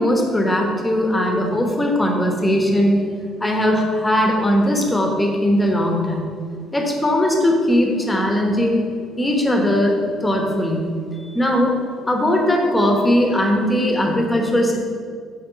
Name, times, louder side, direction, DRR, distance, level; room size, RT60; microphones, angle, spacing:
voice 1, 0.0-3.0 3.4-6.3 6.7-8.8 9.2-11.0 11.3-11.8 12.0-14.8, left 1 dB, 10° left, 1 dB, 1.1 m, -19 dB
9.5 x 3.6 x 5.9 m, 2.1 s
cardioid pair, 140°, 0 cm